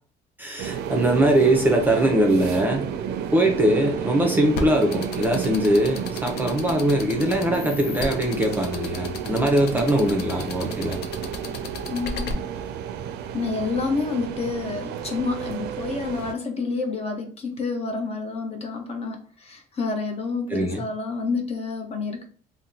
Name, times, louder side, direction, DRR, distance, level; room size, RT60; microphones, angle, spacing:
voice 1, 0.4-2.9 3.3-11.0 20.5-20.8, right 1 dB, 10° right, 2 dB, 0.6 m, -21 dB
sound 1, 0.6-16.3, right 8 dB, 75° right, 0.4 m, -31 dB
sound 2, 4.5-12.3, left 4 dB, 75° left, 0.6 m, -33 dB
voice 2, 11.9-12.4 13.3-22.3, left 4 dB, 40° left, 3 dB, 0.8 m, -29 dB
2.8 x 2.1 x 3.7 m, 0.42 s
cardioid pair, 110°, 17 cm